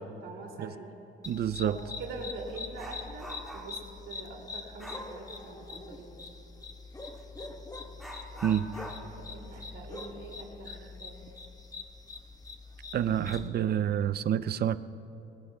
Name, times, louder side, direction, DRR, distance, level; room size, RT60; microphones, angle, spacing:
voice 1, 0.2-0.9 1.6-3.8 4.1-6.1 9.0-11.2, right 3 dB, 85° right, 0 dB, 2.9 m, -44 dB
sound 1, 1.2-13.5, left 4 dB, 20° left, 1.3 m, -44 dB
voice 2, 1.3-1.8 8.4-8.7 12.9-14.8, right 10 dB, 55° right, 14 dB, 0.6 m, -28 dB
Dog, 1.5-1.6 2.0-3.9 4.8-5.1 7.1-7.3 8.0-11.3 11.6-11.7 12.2-12.3 13.0-13.4 13.7-14.0, equal, ahead, 2.6 m, -46 dB
27.5 x 20.5 x 2.4 m, 2.8 s
cardioid pair, 90°, 20 cm